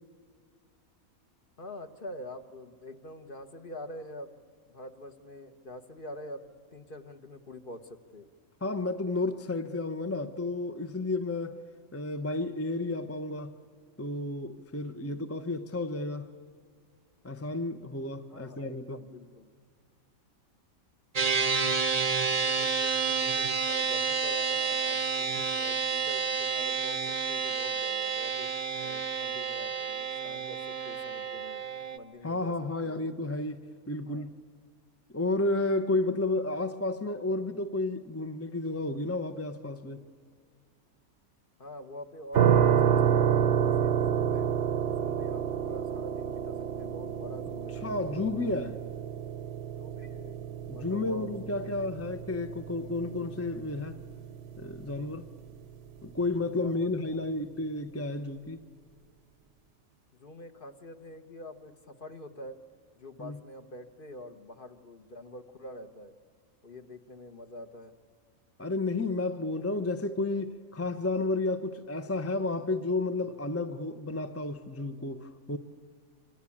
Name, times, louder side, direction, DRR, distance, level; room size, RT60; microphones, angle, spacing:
voice 1, 1.6-4.4 4.7-8.3 18.3-19.5 22.3-28.5 28.8-31.6 31.9-33.5 34.1-34.3 41.6-44.5 44.9-47.8 49.8-50.4 50.7-51.8 56.6-56.9 60.1-62.6 63.0-66.1 66.6-68.0, left 1 dB, 40° left, 1.4 m, -46 dB
voice 2, 8.6-11.6 11.9-13.5 14.0-16.3 17.2-19.0 32.2-33.6 33.9-34.3 35.1-40.0 47.8-48.8 50.7-54.0 54.6-55.3 56.0-58.6 63.2-63.4 68.6-75.6, left 2 dB, 15° left, 0.6 m, -32 dB
sound 1, 21.2-32.0, right 5 dB, 30° right, 0.8 m, -30 dB
sound 2, 42.3-55.2, right 8 dB, 60° right, 1.1 m, -29 dB
26.5 x 25.5 x 8.6 m
omnidirectional pair, 1.5 m